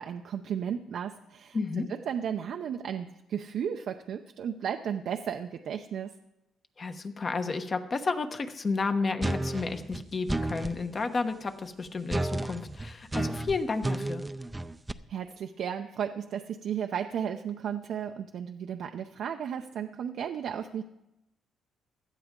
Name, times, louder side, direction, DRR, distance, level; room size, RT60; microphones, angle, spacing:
voice 1, 0.0-1.6 2.1-6.1 15.1-20.8, right 8 dB, 70° right, 5 dB, 0.6 m, -34 dB
voice 2, 1.5-1.9 6.8-14.2, left 4 dB, 40° left, 7 dB, 1.1 m, -31 dB
sound 1, 9.2-10.8 12.1-14.9, right 2 dB, 15° right, 0.6 m, -32 dB
16.5 x 11.5 x 3.8 m, 0.90 s
cardioid pair, 90°, 0 cm